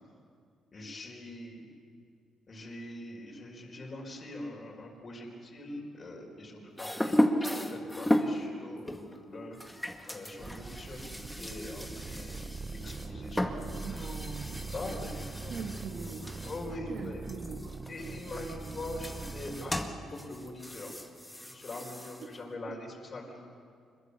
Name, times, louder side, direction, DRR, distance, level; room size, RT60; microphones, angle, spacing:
voice 1, 0.7-1.7 2.5-7.1 7.7-9.6 10.1-14.1 14.7-15.9 16.4-17.2 17.9-21.0 21.3-23.5, left 1 dB, 40° left, -1 dB, 4.9 m, -43 dB
sound 1, 6.8-8.4 8.9-16.7 17.0-22.4, left 1 dB, 5° left, 2.0 m, -35 dB
sound 2, 10.4-19.8, right 4 dB, 40° right, 0.7 m, -42 dB
voice 2, 13.8-14.7 15.5-16.5 16.9-17.8 22.2-22.3, right 5 dB, 70° right, 1 dB, 2.1 m, -42 dB
26.0 x 22.5 x 6.9 m, 2.3 s
cardioid pair, 85°, 0 cm